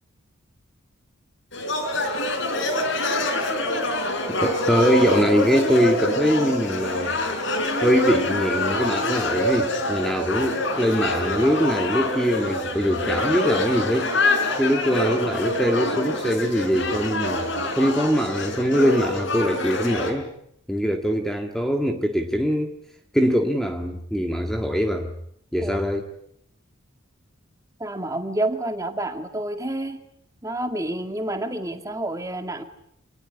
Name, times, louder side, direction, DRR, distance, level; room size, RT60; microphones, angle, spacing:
sound 1, 1.5-20.1, left 2 dB, 60° left, 4.6 m, -25 dB
voice 1, 4.3-7.2 7.8-14.1 14.6-20.3 20.7-22.7 23.1-25.1 25.5-26.1, equal, ahead, 3 dB, 1.7 m, -23 dB
voice 2, 27.8-30.0 30.4-32.6, right 1 dB, 15° right, 6 dB, 2.2 m, -29 dB
27.5 x 19.5 x 9.9 m, 0.75 s
head